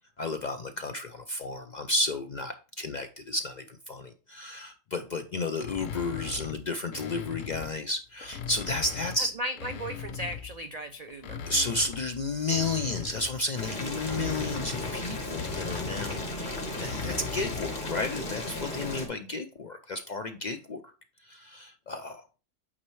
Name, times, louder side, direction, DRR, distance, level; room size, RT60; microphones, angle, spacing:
voice 1, 0.2-9.3 11.5-20.9 21.2-22.2, left 2 dB, 60° left, 7 dB, 0.4 m, -32 dB
sound 1, 5.6-7.8 8.2-10.6 11.1-17.8, left 7 dB, 80° left, 1.0 m, -39 dB
voice 2, 9.4-11.4, right 1 dB, 85° right, 8 dB, 0.3 m, -36 dB
Boiling, 13.6-19.1, left 1 dB, 40° left, 1.5 m, -35 dB
8.6 x 4.3 x 3.1 m, 0.35 s
omnidirectional pair, 1.3 m